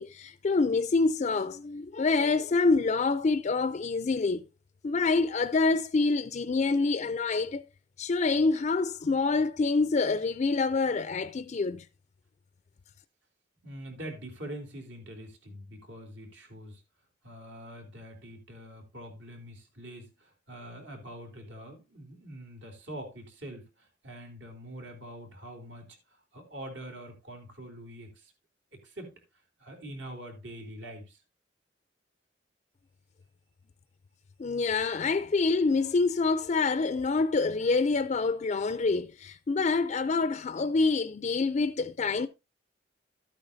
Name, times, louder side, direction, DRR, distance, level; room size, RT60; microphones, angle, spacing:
voice 1, 0.0-4.4 4.8-7.6 8.0-11.9 34.4-42.3, left 3 dB, 40° left, 0.4 m, -26 dB
voice 2, 13.6-16.8 17.2-26.0 26.3-28.3 28.8-29.1 29.6-31.2, right 1 dB, 80° right, 3.4 m, -44 dB
12.5 x 8.8 x 2.7 m
head